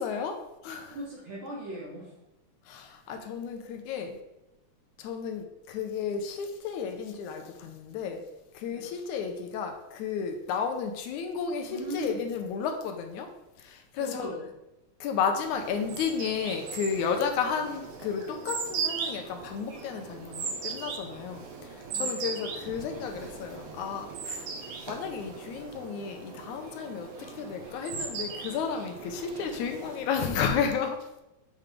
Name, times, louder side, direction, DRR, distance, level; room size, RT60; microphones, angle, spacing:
voice 1, 0.0-1.0 2.7-4.2 5.0-8.2 8.5-13.3 13.6-14.3 15.0-24.5 24.9-31.1, left 6 dB, 80° left, 5 dB, 2.2 m, -32 dB
voice 2, 0.9-2.2 8.7-8.9 11.7-12.2 14.0-14.5 21.9-22.3, right 1 dB, 45° right, -4 dB, 2.0 m, -39 dB
sound 1, 15.3-30.3, right 5 dB, 85° right, 2.4 m, -38 dB
7.9 x 3.6 x 5.0 m, 0.93 s
omnidirectional pair, 3.4 m